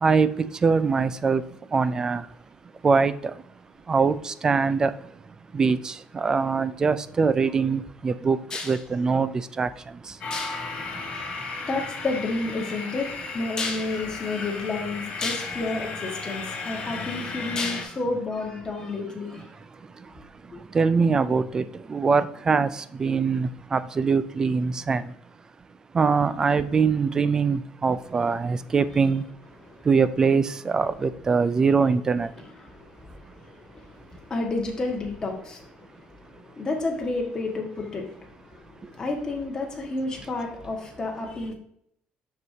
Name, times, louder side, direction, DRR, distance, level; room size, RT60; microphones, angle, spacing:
voice 1, 0.0-1.4 1.7-2.2 2.8-3.1 3.9-4.9 5.5-8.4 8.7-9.3 9.6-9.7 20.7-21.6 21.9-22.7 23.0-25.0 25.9-29.2 29.9-32.3, right 5 dB, 20° right, 15 dB, 0.4 m, -22 dB
sound 1, 10.2-17.8, left 4 dB, 45° left, 2.6 m, -35 dB
voice 2, 10.3-10.6 11.1-11.2 11.6-13.1 13.3-19.4 29.7-29.8 32.6-34.0 34.3-35.9 36.3-41.5, left 3 dB, 25° left, 0 dB, 1.6 m, -30 dB
6.9 x 6.7 x 2.8 m, 0.72 s
cardioid pair, 150°, 3 cm